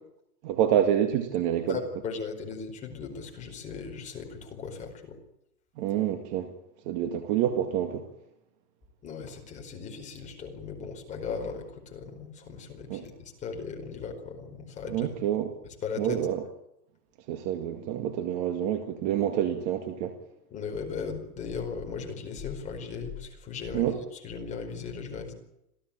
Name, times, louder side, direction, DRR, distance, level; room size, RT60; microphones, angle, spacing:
voice 1, 0.4-1.8 5.8-6.5 6.9-8.1 12.9-13.1 14.9-15.5 16.0-16.4 17.3-20.2 23.7-24.0, right 10 dB, 25° right, 2.0 m, -27 dB
voice 2, 1.7-5.2 9.0-13.1 13.4-15.1 15.8-16.2 20.5-23.9 24.2-25.3, left 5 dB, 15° left, 4.8 m, -37 dB
27.0 x 17.0 x 8.9 m
hypercardioid pair, 160°, 49 cm